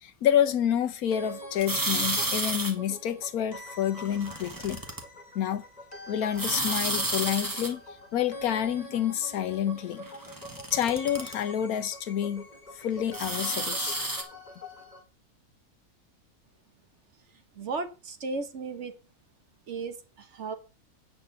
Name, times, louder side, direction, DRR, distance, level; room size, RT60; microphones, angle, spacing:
voice 1, 0.0-4.8 5.3-5.6 6.1-7.8 8.1-10.1 10.7-12.5 12.8-14.0, left 10 dB, 80° left, 1.3 m, -28 dB
sound 1, 1.1-15.0, left 1 dB, 30° left, 1.4 m, -45 dB
sound 2, 1.6-2.7 4.0-5.0 6.4-7.7 10.0-11.3 13.1-14.2, right 1 dB, 15° right, 1.0 m, -31 dB
voice 2, 17.3-18.9 19.7-20.6, right 4 dB, 55° right, 1.2 m, -35 dB
8.3 x 4.2 x 6.9 m
omnidirectional pair, 1.5 m